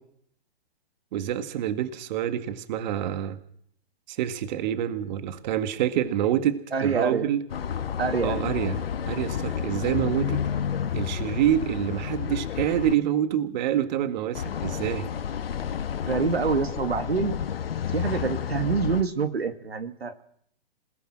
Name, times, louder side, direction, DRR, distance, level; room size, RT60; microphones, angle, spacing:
voice 1, 1.1-3.4 4.1-7.4 8.2-10.4 10.9-15.1, right 11 dB, 45° right, 11 dB, 1.9 m, -27 dB
voice 2, 6.7-7.3 8.0-8.4 16.1-17.3 17.9-20.2, right 5 dB, 85° right, 10 dB, 2.2 m, -26 dB
sound 1, 7.5-12.9 14.3-19.0, left 8 dB, 70° left, 1.6 m, -30 dB
27.0 x 18.5 x 6.2 m, 0.67 s
hypercardioid pair, 125°, 30 cm